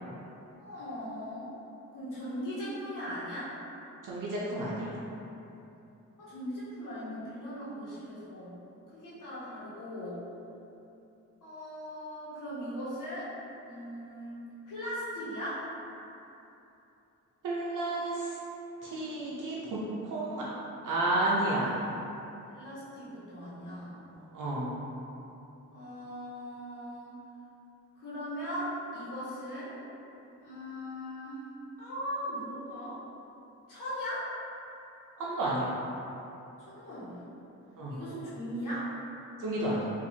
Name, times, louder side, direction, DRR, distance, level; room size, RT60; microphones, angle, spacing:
voice 1, 0.6-1.5 1.9-3.5 6.2-8.6 8.9-10.2 11.4-13.3 13.6-15.6 22.5-24.0 25.7-27.1 28.0-29.8 30.4-31.4 31.8-33.0 33.7-34.3 36.7-37.3 37.9-38.9, equal, 75° left, -11 dB, 1.0 m, -39 dB
voice 2, 4.0-4.9 17.4-18.3 18.8-19.8 20.1-20.4 20.8-21.8 24.3-24.7 35.2-35.7 37.8-37.9 39.4-39.9, right 2 dB, 75° right, -7 dB, 0.6 m, -31 dB
4.3 x 2.5 x 2.7 m, 2.9 s
wide cardioid pair, 105°, 31 cm